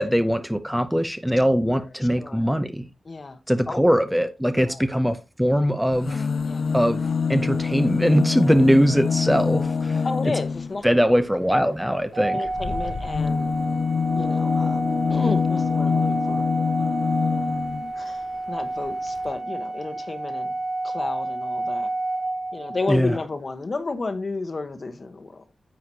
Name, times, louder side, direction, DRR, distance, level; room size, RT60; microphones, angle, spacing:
voice 1, 0.0-2.9 3.5-6.3 6.7-7.0 7.3-10.3 10.8-12.4 22.9-23.2, equal, 5° right, 0.7 m, -21 dB
voice 2, 2.2-2.5 3.0-3.4 3.7-3.8 4.6-4.8 6.4-6.7 10.0-11.2 11.5-11.7 12.3-13.5 14.1-16.5 17.9-20.5 20.8-21.9 22.5-25.4, left 3 dB, 45° left, 1.1 m, -32 dB
sound 1, 5.9-10.8 12.4-17.9 18.9-19.0 19.2-19.3, left 5 dB, 70° left, 0.4 m, -25 dB
Organ, 12.1-23.0, right 2 dB, 70° right, 1.5 m, -30 dB
9.7 x 7.7 x 2.8 m
wide cardioid pair, 100°, 0 cm